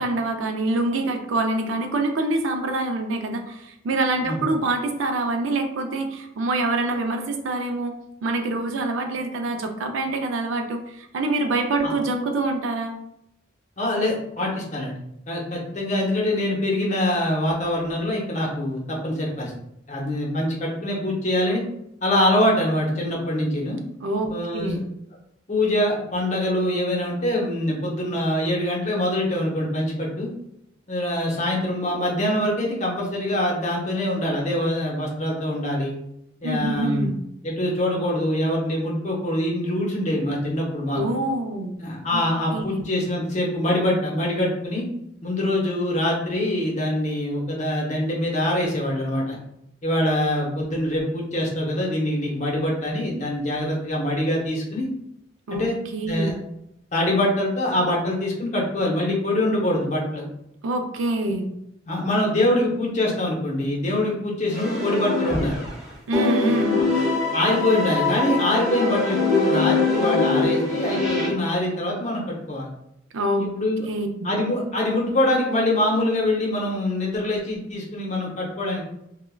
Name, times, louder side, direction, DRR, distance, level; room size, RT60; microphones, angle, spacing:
voice 1, 0.0-7.9 8.2-13.0 24.0-24.8 36.4-37.1 40.9-41.7 42.1-42.2 42.5-42.8 55.5-56.4 60.6-61.5 66.1-66.8 73.1-73.5 73.9-74.4, right 2 dB, 80° right, 5 dB, 0.4 m, -25 dB
voice 2, 13.8-14.9 15.3-19.5 19.9-21.6 22.0-23.8 24.3-24.8 25.5-30.3 30.9-35.9 36.4-37.1 37.4-41.0 41.8-44.8 45.2-49.4 49.8-54.9 55.5-55.7 56.1-56.4 56.9-60.2 61.9-65.6 66.7-66.8 67.3-72.7 73.4-73.9 74.2-78.8, left 1 dB, 35° left, -3 dB, 0.7 m, -24 dB
sound 1, 64.5-65.8 66.1-71.3, left 3 dB, ahead, 0.8 m, -23 dB
3.3 x 2.1 x 2.2 m, 0.79 s
head